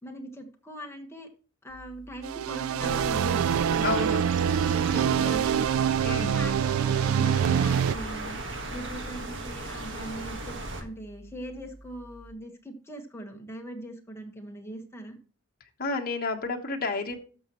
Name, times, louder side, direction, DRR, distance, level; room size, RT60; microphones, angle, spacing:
voice 1, 0.0-1.3 1.6-5.7 6.2-8.4 8.7-15.2, right 1 dB, 15° left, 2 dB, 1.5 m, -40 dB
sound 1, 1.7-12.3, right 1 dB, 25° right, 3.4 m, -51 dB
sound 2, 2.2-7.9, right 8 dB, 85° right, 0.3 m, -25 dB
sound 3, 2.8-10.8, right 2 dB, 65° right, 1.6 m, -37 dB
voice 2, 3.8-4.2 4.9-5.3 6.0-6.4 15.6-17.2, left 4 dB, 45° left, 3 dB, 1.2 m, -31 dB
13.0 x 6.2 x 3.1 m, 0.38 s
head